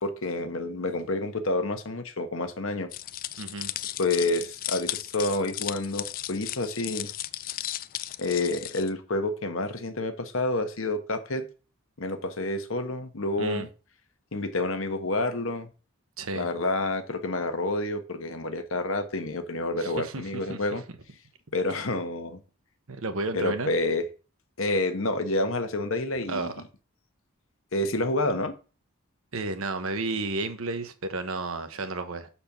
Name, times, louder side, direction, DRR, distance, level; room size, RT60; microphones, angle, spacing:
voice 1, 0.0-2.9 4.0-7.1 8.2-11.4 12.0-13.7 14.3-15.7 16.3-20.8 21.5-22.4 23.3-24.0 24.6-26.5 27.7-28.5, left 2 dB, 65° left, 1.1 m, -28 dB
sound 1, 2.9-8.9, left 13 dB, 40° left, 0.3 m, -35 dB
voice 2, 3.4-3.7 13.4-13.7 16.2-16.5 19.8-20.6 22.9-23.7 26.3-26.6 29.3-32.3, right 3 dB, 70° right, 1.0 m, -32 dB
6.9 x 4.3 x 5.8 m
head